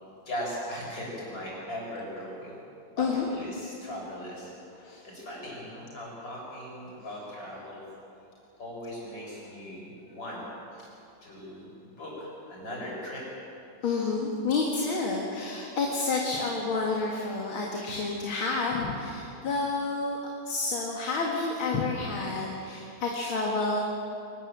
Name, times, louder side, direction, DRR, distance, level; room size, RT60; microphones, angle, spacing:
voice 1, 0.3-2.6 2.9-4.5 4.8-7.8 8.6-10.4 11.2-13.2, equal, 65° left, -4 dB, 7.8 m, -39 dB
voice 2, 13.8-20.2 20.5-23.8, left 3 dB, 80° left, -1 dB, 2.8 m, -29 dB
24.0 x 20.0 x 7.5 m, 2.7 s
omnidirectional pair, 2.2 m